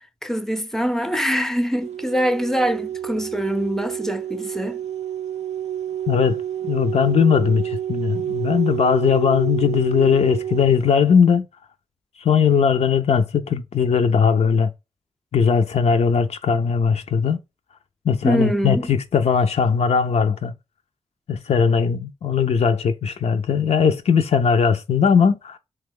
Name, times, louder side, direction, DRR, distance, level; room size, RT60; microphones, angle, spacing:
voice 1, 0.2-4.8 18.2-18.8, equal, 5° left, 0.5 m, -23 dB
sound 1, 1.8-10.9, right 10 dB, 85° right, 0.4 m, -29 dB
voice 2, 6.1-11.5 12.2-14.7 15.3-17.4 18.1-20.5 21.3-25.6, left 6 dB, 75° left, 0.4 m, -19 dB
3.0 x 2.2 x 3.3 m
cardioid pair, 60°, 11 cm